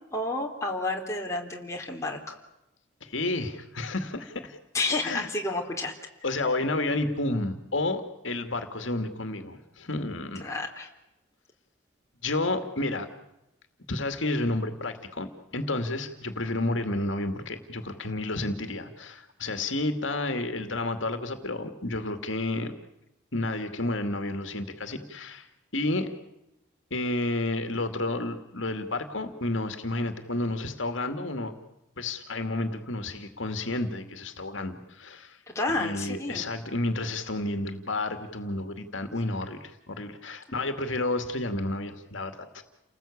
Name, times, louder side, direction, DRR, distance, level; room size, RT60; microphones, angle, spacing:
voice 1, 0.1-2.4 4.7-5.9 10.4-10.9 35.6-36.4, left 2 dB, 15° left, 0 dB, 3.5 m, -30 dB
voice 2, 3.0-4.6 5.0-5.3 6.2-10.6 12.2-13.1 13.9-22.7 23.3-25.5 25.7-26.1 26.9-31.5 32.0-35.4 35.7-42.6, left 2 dB, 70° left, 7 dB, 2.4 m, -31 dB
30.0 x 20.0 x 8.7 m, 0.91 s
head